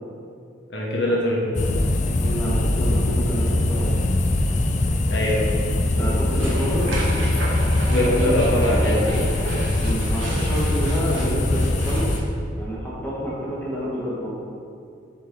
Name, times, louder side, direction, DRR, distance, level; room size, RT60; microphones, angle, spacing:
voice 1, 0.7-1.8 5.1-5.4 7.9-9.2, left 1 dB, 70° left, -4 dB, 1.1 m, -22 dB
sound 1, 1.5-12.2, left 1 dB, 40° left, 0.4 m, -22 dB
voice 2, 2.2-4.0 6.0-6.9 9.7-12.1 12.5-14.3, equal, 10° left, -7 dB, 1.6 m, -29 dB
sound 2, 6.3-12.2, right 2 dB, 85° right, 1.1 m, -31 dB
7.7 x 4.3 x 3.8 m, 2.4 s
head